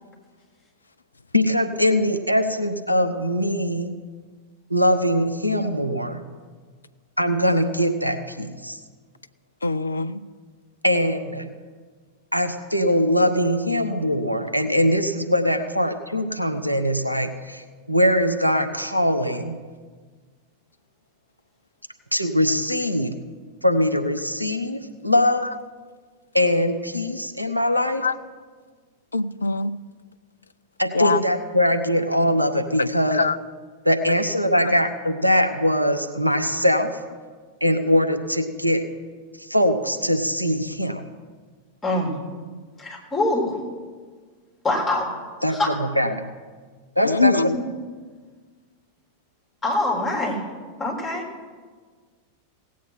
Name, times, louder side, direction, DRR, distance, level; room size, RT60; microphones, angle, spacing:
voice 1, 1.3-4.0 4.7-6.2 7.2-8.8 10.8-11.5 12.3-19.6 22.1-23.1 23.6-25.5 26.3-28.1 30.8-33.2 33.8-36.9 37.6-38.8 39.4-41.0 45.4-46.2 47.0-47.5, equal, 90° right, 7 dB, 0.8 m, -22 dB
voice 2, 9.6-10.2 28.0-28.1 29.1-29.7 30.9-31.2 32.8-32.9 33.1-33.4 34.6-34.7 47.0-47.6, left 3 dB, 80° left, 17 dB, 0.4 m, -22 dB
voice 3, 42.8-43.6 44.6-45.1 45.5-45.7 47.5-47.6 49.6-50.4 50.8-51.2, left 2 dB, 10° left, -1 dB, 3.6 m, -24 dB
17.0 x 8.4 x 5.7 m, 1.5 s
figure-of-eight pair, 90°, 0 cm